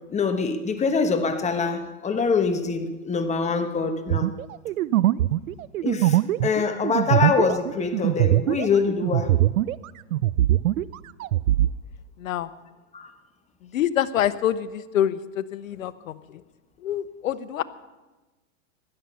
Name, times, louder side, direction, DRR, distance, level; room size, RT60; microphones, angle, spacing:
voice 1, 0.1-4.3 5.8-9.3 12.9-13.1, left 5 dB, 15° left, 7 dB, 1.2 m, -24 dB
sound 1, 4.1-9.8 10.1-11.7, right 14 dB, 85° right, 0.5 m, -22 dB
voice 2, 12.2-12.5 13.6-16.4 16.8-17.6, left 11 dB, 80° left, 13 dB, 1.0 m, -26 dB
16.0 x 12.0 x 5.6 m, 1.1 s
hypercardioid pair, 125°, 40 cm